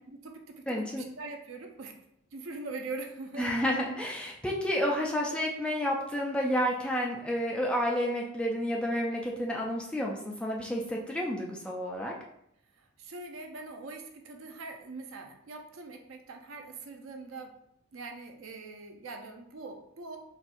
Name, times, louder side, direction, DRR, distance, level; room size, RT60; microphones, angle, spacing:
voice 1, 0.1-0.8 1.2-1.9 2.3-3.5 12.8-17.5 17.9-20.2, right 3 dB, 70° right, 3 dB, 0.5 m, -42 dB
voice 2, 0.7-1.0 3.4-12.1, equal, 5° left, -2 dB, 0.4 m, -30 dB
4.1 x 2.3 x 2.5 m, 0.74 s
head